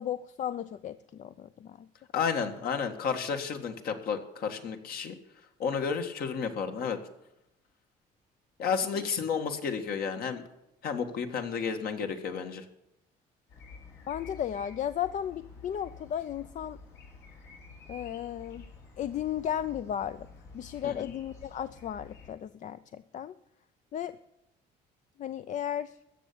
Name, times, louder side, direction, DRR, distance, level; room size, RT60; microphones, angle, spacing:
voice 1, 0.0-1.9 14.1-16.8 17.9-18.6 19.0-20.3 20.5-23.3 23.9-24.2 25.2-26.0, left 10 dB, 45° left, 13 dB, 0.5 m, -35 dB
voice 2, 2.1-5.2 5.6-7.0 8.6-10.4 10.8-12.7 20.8-21.0, left 6 dB, 65° left, 5 dB, 1.7 m, -31 dB
sound 1, 13.5-22.3, left 3 dB, 85° left, 4.8 m, -50 dB
14.5 x 7.0 x 8.4 m, 0.86 s
cardioid pair, 110°, 17 cm